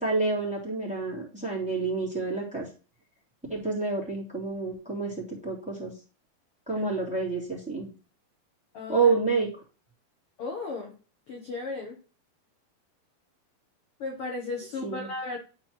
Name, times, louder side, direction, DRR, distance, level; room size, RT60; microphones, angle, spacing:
voice 1, 0.0-2.7 3.5-5.9 6.7-7.9 8.9-9.5 14.8-15.1, right 4 dB, ahead, -3 dB, 2.0 m, -28 dB
voice 2, 8.7-9.1 10.4-10.9 11.3-11.9 14.0-15.4, left 3 dB, 70° left, 0 dB, 1.3 m, -35 dB
11.5 x 4.4 x 3.1 m, 0.35 s
omnidirectional pair, 4.4 m